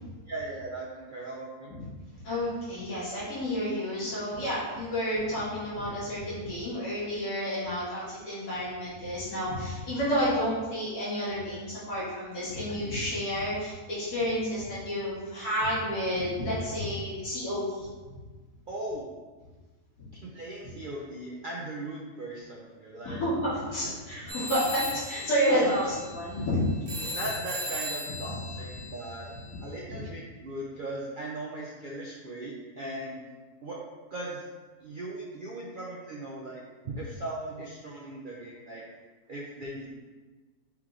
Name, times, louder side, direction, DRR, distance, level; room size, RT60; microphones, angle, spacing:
voice 1, 0.3-1.7 18.7-19.0 20.2-23.2 23.8-23.9 25.5-25.7 27.0-29.3 29.6-33.2 33.6-33.8 34.1-34.4 34.8-38.8 39.3-39.9, right 1 dB, 75° right, -4 dB, 0.4 m, -38 dB
voice 2, 2.2-17.9 23.1-26.6 29.9-30.0, equal, 85° left, -10 dB, 2.2 m, -30 dB
sound 1, 24.3-29.7, left 1 dB, 40° right, 1.0 m, -38 dB
4.7 x 3.1 x 3.6 m, 1.3 s
omnidirectional pair, 1.6 m